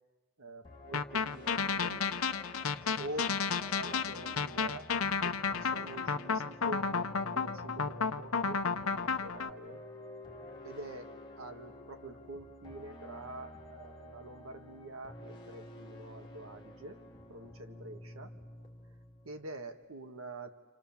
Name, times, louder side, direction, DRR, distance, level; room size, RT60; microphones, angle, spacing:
voice 1, 0.4-2.1 3.0-9.9 10.6-17.0 17.3-18.3 19.2-20.5, right 1 dB, 75° right, 6 dB, 1.8 m, -46 dB
sound 1, 0.6-19.8, left 1 dB, 25° left, 2.6 m, -51 dB
sound 2, 0.9-9.5, left 5 dB, 75° left, 0.9 m, -32 dB
29.0 x 28.0 x 7.3 m, 1.3 s
head